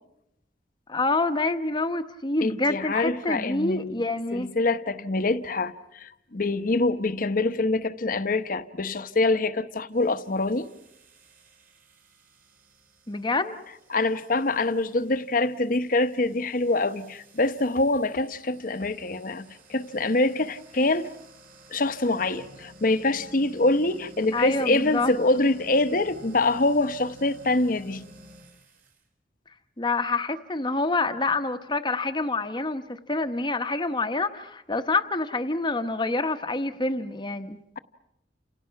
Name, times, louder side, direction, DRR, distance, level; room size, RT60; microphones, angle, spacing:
voice 1, 0.9-4.5 13.1-13.6 24.3-25.1 29.8-37.6, left 3 dB, 25° left, 1.0 m, -27 dB
voice 2, 2.4-4.0 4.3-10.7 13.9-21.1 21.7-28.1, left 2 dB, 50° left, 1.0 m, -25 dB
sound 1, 9.9-29.0, equal, 55° right, 4.1 m, -52 dB
29.5 x 28.0 x 5.8 m
head